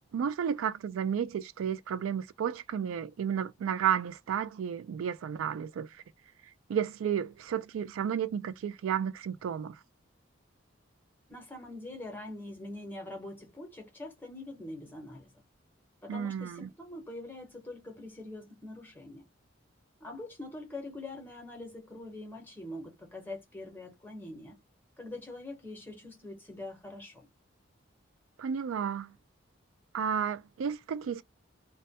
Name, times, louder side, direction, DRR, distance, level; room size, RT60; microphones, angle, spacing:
voice 1, 0.1-5.9 6.7-9.8 16.1-16.7 28.4-29.1 29.9-31.2, right 8 dB, 85° right, 0.3 m, -32 dB
voice 2, 11.3-15.3 16.0-19.3 20.0-24.6 25.0-27.3, left 2 dB, 10° left, 0.8 m, -44 dB
2.2 x 2.1 x 2.7 m
head